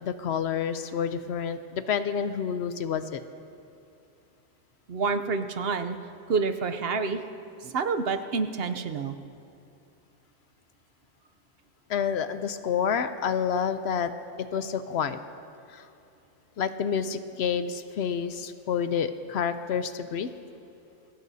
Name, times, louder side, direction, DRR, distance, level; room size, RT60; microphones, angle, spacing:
voice 1, 0.0-3.2 11.9-14.1 14.4-15.2 15.7-15.9 16.6-20.3, left 7 dB, 65° left, 11 dB, 0.8 m, -29 dB
voice 2, 4.9-6.0 6.3-7.2 7.6-9.2, right 4 dB, 60° right, 9 dB, 0.8 m, -28 dB
22.5 x 17.5 x 2.7 m, 2.6 s
omnidirectional pair, 1.2 m